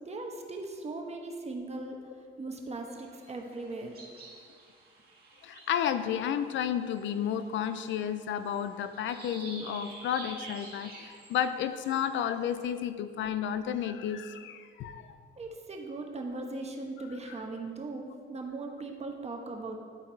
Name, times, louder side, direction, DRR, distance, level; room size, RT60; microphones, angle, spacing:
voice 1, 0.0-2.0 2.4-4.0 15.4-19.8, right 2 dB, 35° right, 2 dB, 1.1 m, -39 dB
sound 1, 2.9-12.7, right 2 dB, 50° right, 1.8 m, -50 dB
voice 2, 5.4-15.2, left 9 dB, 70° left, 11 dB, 0.4 m, -32 dB
10.5 x 4.0 x 4.4 m, 2.1 s
cardioid pair, 90°, 20 cm